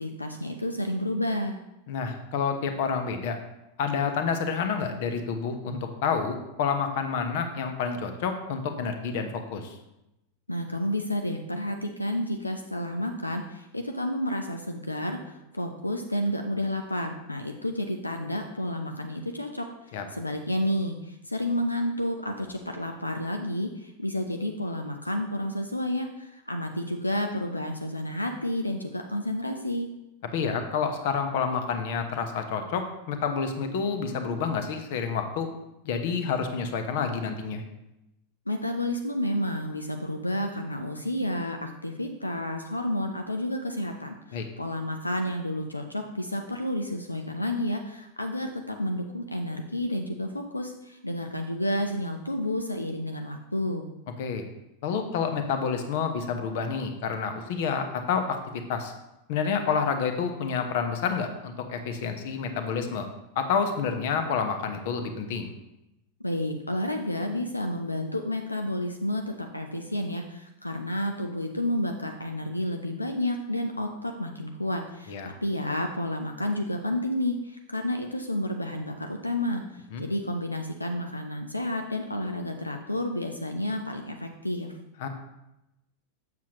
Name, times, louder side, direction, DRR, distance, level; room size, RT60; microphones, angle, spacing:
voice 1, 0.0-1.6 10.5-29.9 38.5-53.9 66.2-84.8, left 1 dB, 85° left, 4 dB, 0.6 m, -30 dB
voice 2, 1.9-3.4 3.8-9.7 19.9-20.0 30.3-35.5 35.8-37.6 44.3-44.4 54.2-54.4 54.8-58.9 59.3-63.1 63.3-65.5 75.1-75.3 79.9-80.0 85.0-85.1, left 6 dB, 50° left, 7 dB, 0.9 m, -29 dB
7.7 x 7.1 x 3.0 m, 0.92 s
figure-of-eight pair, 90°, 0 cm